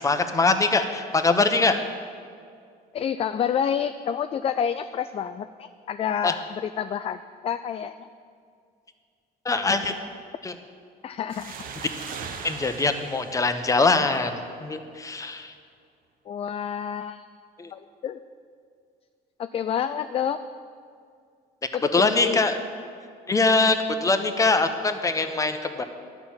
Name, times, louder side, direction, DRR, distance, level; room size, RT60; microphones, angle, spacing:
voice 1, 0.0-1.8 6.2-6.3 9.4-9.9 10.4-10.5 12.4-15.5 17.6-17.7 21.9-22.6 23.3-25.8, left 3 dB, 20° left, 8 dB, 0.9 m, -23 dB
voice 2, 2.9-8.1 11.0-11.7 16.3-17.3 17.7-18.2 19.4-20.4 21.7-22.4, left 8 dB, 35° left, 11 dB, 0.3 m, -29 dB
sound 1, 11.3-14.7, right 6 dB, 55° right, 1.0 m, -40 dB
11.0 x 5.9 x 8.7 m, 2.2 s
cardioid pair, 110°, 17 cm